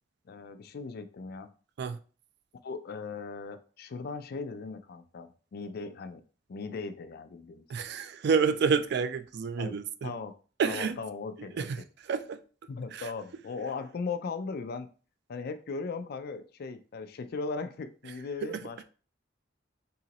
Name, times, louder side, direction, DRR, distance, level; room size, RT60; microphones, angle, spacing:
voice 1, 0.3-1.5 2.6-6.2 6.5-7.6 9.6-9.8 10.0-10.3 10.6-11.8 12.7-14.9 15.3-18.8, left 4 dB, 55° left, 0.4 m, -38 dB
voice 2, 7.7-10.1 10.6-11.0 11.6-11.8 12.1-12.4 12.9-13.0 18.4-18.6, right 6 dB, 60° right, 0.3 m, -29 dB
3.8 x 2.9 x 2.9 m
head